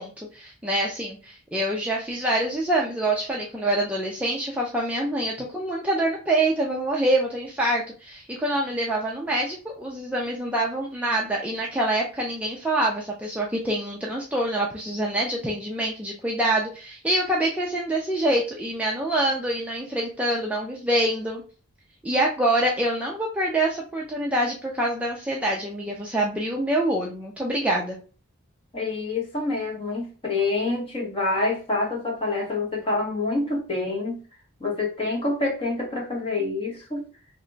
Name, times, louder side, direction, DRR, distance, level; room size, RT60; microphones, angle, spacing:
voice 1, 0.0-21.4 22.0-28.0, right 1 dB, 5° right, -2 dB, 0.4 m, -25 dB
voice 2, 28.7-34.2 34.6-37.1, left 3 dB, 25° left, -1 dB, 0.9 m, -27 dB
2.9 x 2.2 x 3.8 m, 0.37 s
head